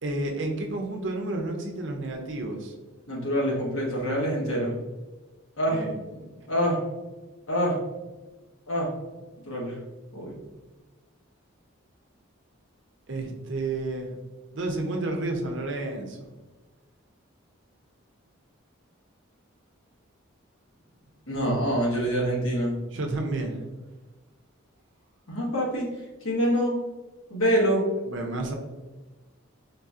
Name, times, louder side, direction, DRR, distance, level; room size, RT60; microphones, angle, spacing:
voice 1, 0.0-2.7 5.7-6.2 13.1-14.1 14.5-16.2 22.9-23.7 28.1-28.5, right 2 dB, 60° right, 3 dB, 0.6 m, -31 dB
voice 2, 3.1-4.7 5.6-5.8 6.5-6.8 7.5-7.8 8.7-8.9 9.5-9.8 10.1-10.4 21.3-22.7 25.3-25.9 26.2-26.8 27.3-27.8, equal, 80° left, -4 dB, 1.2 m, -25 dB
3.9 x 2.7 x 2.4 m, 1.2 s
head